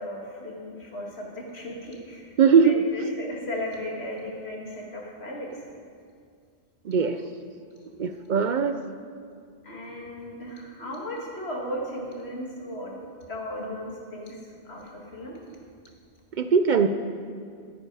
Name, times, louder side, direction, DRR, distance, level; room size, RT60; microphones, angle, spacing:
voice 1, 0.0-2.3 2.6-5.6 9.6-13.0 13.3-14.4 14.6-15.4, left 1 dB, 75° left, -2 dB, 2.3 m, -36 dB
voice 2, 2.4-2.8 6.8-7.2 8.0-8.8 16.4-16.9, right 6 dB, 60° right, 8 dB, 0.6 m, -20 dB
15.0 x 8.8 x 4.8 m, 2.2 s
omnidirectional pair, 1.1 m